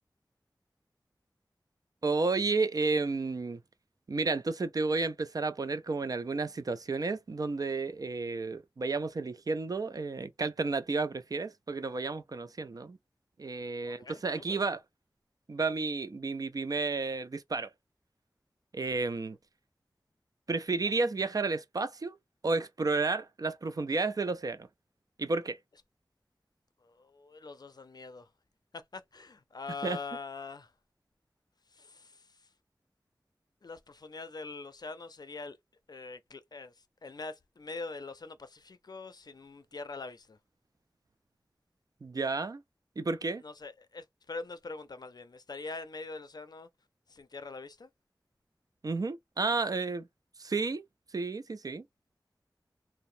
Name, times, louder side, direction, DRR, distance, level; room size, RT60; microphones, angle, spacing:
voice 1, 2.0-3.6 4.1-13.0 13.4-14.8 15.5-17.7 18.7-19.4 20.5-22.2 22.4-24.7 25.2-25.6 29.8-30.0 42.0-42.6 43.0-43.4 48.8-50.1 50.4-50.8 51.1-51.8, right 3 dB, 50° right, 0.4 m, -32 dB
voice 2, 13.8-14.2 14.5-14.6 26.8-28.3 28.7-30.7 31.7-32.5 33.6-35.6 35.9-40.4 43.4-46.7 47.1-47.9, left 3 dB, 60° left, 0.5 m, -43 dB
2.8 x 2.0 x 2.6 m
wide cardioid pair, 65°, 8 cm